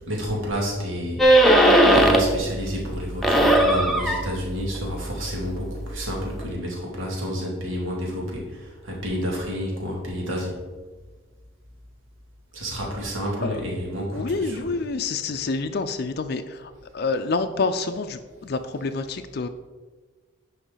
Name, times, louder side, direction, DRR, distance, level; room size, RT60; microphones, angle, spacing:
voice 1, 0.1-10.6 12.5-14.7, equal, 80° right, -2 dB, 2.4 m, -30 dB
sound 1, 1.2-2.4 2.8-6.4, right 1 dB, ahead, 0.8 m, -19 dB
voice 2, 14.1-19.5, left 3 dB, 50° left, 8 dB, 0.4 m, -28 dB
9.9 x 5.9 x 3.9 m, 1.3 s
head